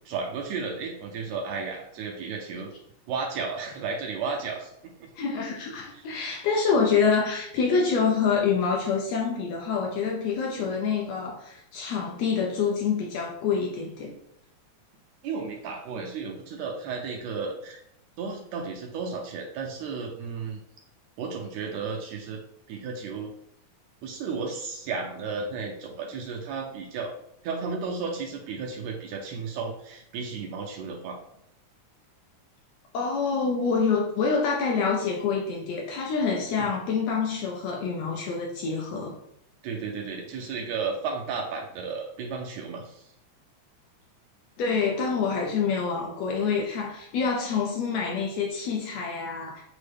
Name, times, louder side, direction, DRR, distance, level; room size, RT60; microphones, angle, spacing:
voice 1, 0.0-2.7 3.1-4.7 5.0-5.1 5.9-6.0 15.2-17.8 18.2-20.6 21.2-22.4 22.7-23.3 24.0-27.1 27.4-31.2 36.6-36.7 39.6-43.1, right 5 dB, 80° right, 0 dB, 1.6 m, -33 dB
voice 2, 5.2-14.2 32.9-39.2 44.6-49.6, left 5 dB, 80° left, 0 dB, 1.6 m, -26 dB
6.0 x 2.1 x 3.3 m, 0.75 s
omnidirectional pair, 3.4 m